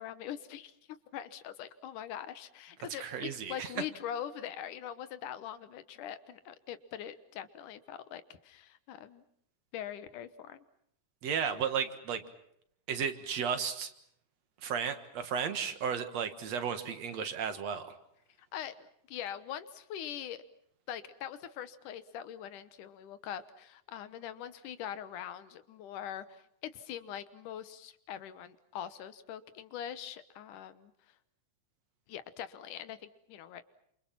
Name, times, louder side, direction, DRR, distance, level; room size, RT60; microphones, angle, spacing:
voice 1, 0.0-9.2 9.7-10.6 18.4-20.4 20.9-31.2 32.1-33.6, left 10 dB, 85° left, 13 dB, 2.7 m, -43 dB
voice 2, 3.0-3.7 11.2-12.2 12.9-13.9 14.6-17.9, right 7 dB, 60° right, 9 dB, 2.7 m, -34 dB
28.5 x 27.5 x 5.9 m, 0.71 s
omnidirectional pair, 3.5 m